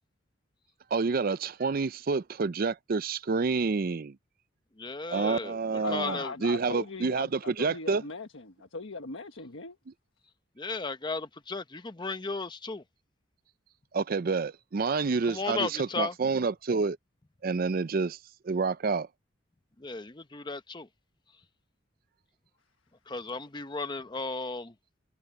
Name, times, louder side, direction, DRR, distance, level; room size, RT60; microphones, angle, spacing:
voice 1, 0.9-4.2 5.1-8.0 13.9-17.0 17.4-18.2 18.4-19.1, right 4 dB, 50° right, 0.5 m, -28 dB
voice 2, 4.8-6.3 10.6-12.8 15.3-16.1 19.8-20.9 23.1-24.7, left 3 dB, 25° left, 0.8 m, -35 dB
voice 3, 5.8-9.8, left 3 dB, 80° left, 1.4 m, -39 dB
head